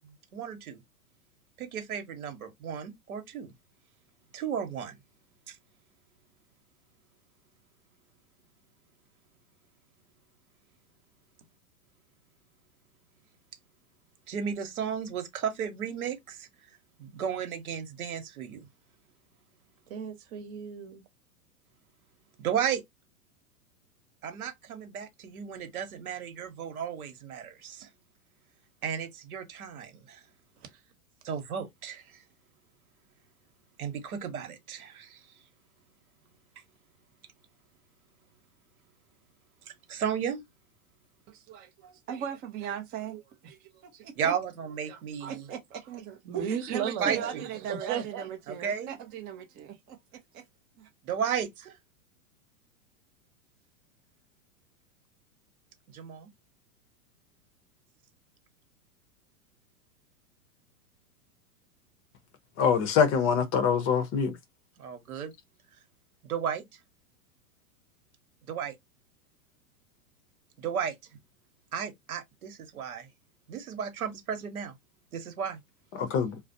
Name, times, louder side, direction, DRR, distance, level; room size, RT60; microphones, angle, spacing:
voice 1, 0.3-0.8 1.6-3.5 4.3-5.0 5.5-5.6 14.3-16.5 17.0-18.7 22.4-22.8 24.2-27.9 28.8-30.2 31.2-32.2 33.8-35.3 39.9-40.4 44.2-45.5 47.0-47.5 48.5-48.9 51.0-51.8 55.9-56.3 64.8-65.3 66.2-66.7 68.5-68.8 70.6-71.0 71.7-73.1 73.5-74.7 75.1-75.6, right 7 dB, 85° right, 1.0 m, -34 dB
voice 2, 19.9-21.0 46.2-48.3, right 8 dB, 45° right, 0.9 m, -35 dB
voice 3, 41.3-44.3 45.2-50.0 50.3-50.4 50.8-50.9, right 8 dB, 25° right, 0.4 m, -39 dB
voice 4, 62.6-64.4 75.9-76.4, left 6 dB, 30° left, 0.6 m, -24 dB
2.4 x 2.0 x 2.6 m
hypercardioid pair, 115°, 42 cm